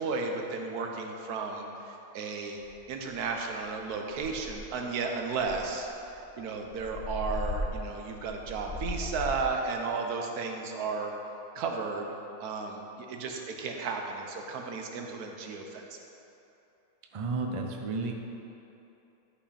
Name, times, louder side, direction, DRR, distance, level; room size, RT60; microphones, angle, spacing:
voice 1, 0.0-2.6 2.9-5.9 6.4-11.1 11.5-12.1 12.4-16.0, right 4 dB, 90° right, 2 dB, 1.4 m, -34 dB
sound 1, 2.6-2.7 3.1-3.4 3.7-3.8 4.1-4.8 5.3-9.5, left 1 dB, 40° left, 1.5 m, -37 dB
voice 2, 17.1-18.1, right 3 dB, 40° right, 2 dB, 0.4 m, -32 dB
11.5 x 5.8 x 4.2 m, 2.9 s
omnidirectional pair, 1.6 m